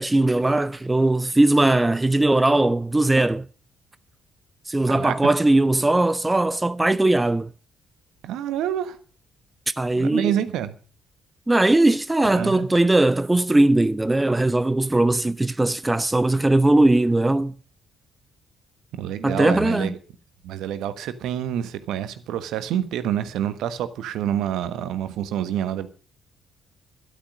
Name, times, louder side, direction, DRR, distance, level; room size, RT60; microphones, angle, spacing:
voice 1, 0.0-3.4 4.7-7.5 9.8-10.3 11.5-17.5 19.2-19.9, right 2 dB, 15° right, 0.7 m, -19 dB
voice 2, 8.2-9.0 10.0-10.8 12.3-12.7 18.9-20.0 20.4-25.9, right 10 dB, 65° right, 1.3 m, -27 dB
13.0 x 12.0 x 5.4 m
figure-of-eight pair, 45°, 0 cm